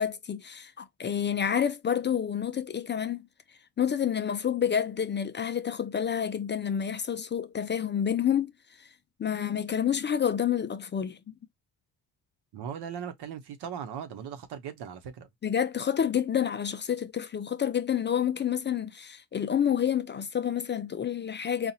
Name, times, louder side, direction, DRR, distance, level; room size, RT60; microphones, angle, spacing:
voice 1, 0.0-3.3 3.8-8.5 8.8-8.9 9.2-11.2 15.4-21.7, left 8 dB, 30° left, 0.4 m, -28 dB
voice 2, 12.5-15.3, right 8 dB, 75° right, 1.0 m, -38 dB
4.2 x 2.4 x 2.8 m
cardioid pair, 100°, 40 cm